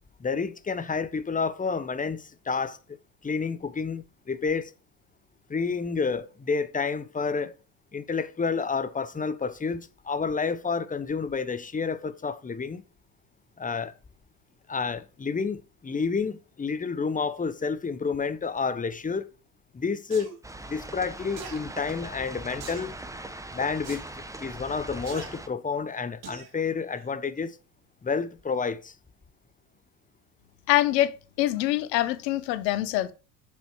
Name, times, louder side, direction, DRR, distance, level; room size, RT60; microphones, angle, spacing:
voice 1, 0.2-2.8 3.2-4.7 5.5-7.5 7.9-12.8 13.6-13.9 14.7-19.3 19.7-20.3 20.7-22.9 23.5-24.0 24.4-27.6 28.0-28.9, left 5 dB, 15° left, 1.1 m, -29 dB
sound 1, 20.1-20.3 21.4-21.6 22.6-22.9 23.8-24.0 25.0-25.3 26.2-26.5 27.0-27.1, right 6 dB, 50° right, 3.6 m, -41 dB
sound 2, 20.4-25.5, right 2 dB, 5° right, 1.2 m, -40 dB
voice 2, 30.7-33.1, left 15 dB, 80° left, 1.2 m, -25 dB
7.2 x 7.2 x 4.7 m
hypercardioid pair, 80°, 49 cm